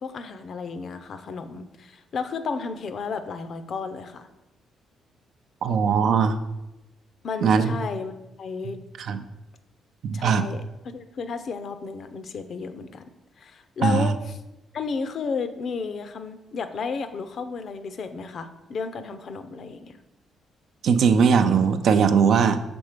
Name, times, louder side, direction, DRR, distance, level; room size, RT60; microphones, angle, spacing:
voice 1, 0.0-4.3 7.2-8.1 8.4-8.8 10.1-13.0 13.4-14.4 14.7-20.0, left 5 dB, 55° left, 10 dB, 0.5 m, -33 dB
voice 2, 5.6-6.4 7.4-7.7 9.0-9.2 10.0-10.5 13.8-14.1 20.8-22.6, right 6 dB, 65° right, 9 dB, 0.4 m, -20 dB
6.0 x 3.6 x 5.0 m, 0.98 s
cardioid pair, 90°, 0 cm